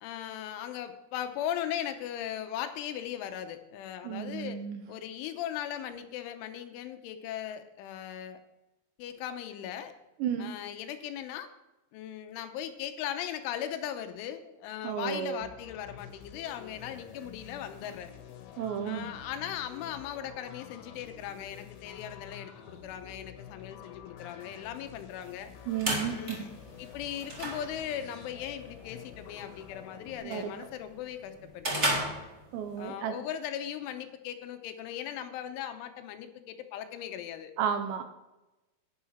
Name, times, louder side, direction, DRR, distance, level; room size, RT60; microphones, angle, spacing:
voice 1, 0.0-4.6 4.9-8.4 9.0-9.9 10.4-11.5 11.9-18.1 18.8-25.5 26.0-26.5 26.8-31.9 32.8-37.5, left 10 dB, 85° left, 8 dB, 3.3 m, -38 dB
voice 2, 4.0-4.8 10.2-10.5 14.8-15.4 18.6-19.1 25.7-26.5 30.2-30.5 32.5-33.2 37.6-38.0, right 8 dB, 75° right, 7 dB, 2.8 m, -33 dB
sound 1, 15.4-30.2, left 8 dB, 70° left, 3.2 m, -49 dB
sound 2, 25.4-32.9, right 1 dB, 35° right, 1.1 m, -36 dB
10.5 x 10.5 x 4.4 m, 0.99 s
omnidirectional pair, 5.7 m